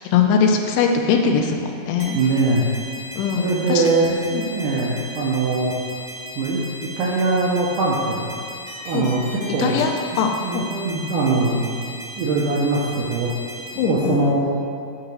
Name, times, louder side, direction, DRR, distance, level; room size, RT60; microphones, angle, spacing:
voice 1, 0.1-2.2 3.2-3.9 4.3-4.4 8.9-9.1 9.6-10.7 13.8-14.2, left 6 dB, 80° left, 3 dB, 2.4 m, -21 dB
sound 1, 2.0-13.8, equal, 55° right, 1.3 m, -36 dB
voice 2, 2.1-2.7 3.4-4.2 4.5-5.8 6.4-6.6 7.0-8.3 8.9-9.2 9.5-9.8 10.4-11.7 12.2-13.3 13.9-14.4, right 3 dB, 80° right, -5 dB, 1.8 m, -21 dB
8.7 x 2.9 x 6.1 m, 2.4 s
omnidirectional pair, 4.6 m